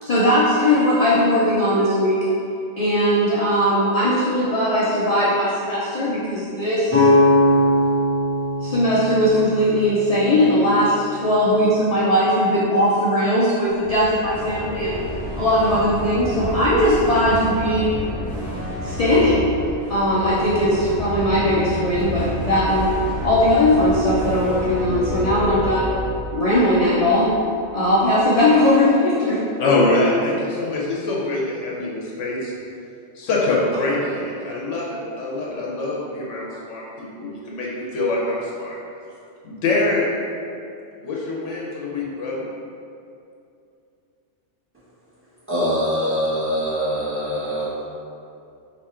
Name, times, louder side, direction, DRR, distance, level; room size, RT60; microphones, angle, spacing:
voice 1, 0.0-2.3 2.8-7.1 8.6-15.0 15.4-17.9 18.8-19.5 19.9-26.0 26.3-27.3 27.7-29.4, left 1 dB, 50° left, -7 dB, 0.4 m, -19 dB
sound 1, 6.9-10.7, left 1 dB, 15° left, 1.0 m, -20 dB
sound 2, 13.7-27.7, left 1 dB, 45° right, 1.7 m, -30 dB
voice 2, 29.6-32.5 33.1-38.8 39.4-40.1 41.0-42.4, left 2 dB, 85° left, -4 dB, 1.0 m, -24 dB
voice 3, 45.5-47.8, equal, 10° right, -11 dB, 1.3 m, -23 dB
3.6 x 2.9 x 4.3 m, 2.6 s
omnidirectional pair, 1.2 m